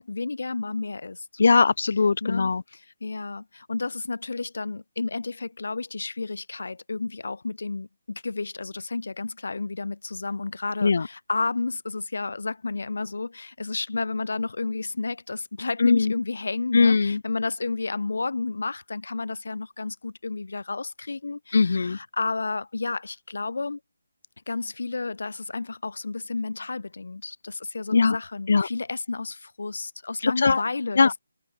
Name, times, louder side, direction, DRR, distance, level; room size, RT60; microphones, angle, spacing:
voice 1, 0.0-1.3 2.2-23.8 24.5-31.1, left 3 dB, 75° left, 5.1 m, -31 dB
voice 2, 1.4-2.6 10.8-11.1 15.8-16.1 16.7-17.2 21.5-22.0 27.9-28.2 28.5-28.7 30.2-30.6 31.0-31.2, left 4 dB, 55° left, 5.5 m, -20 dB
hypercardioid pair, 170°, 0 cm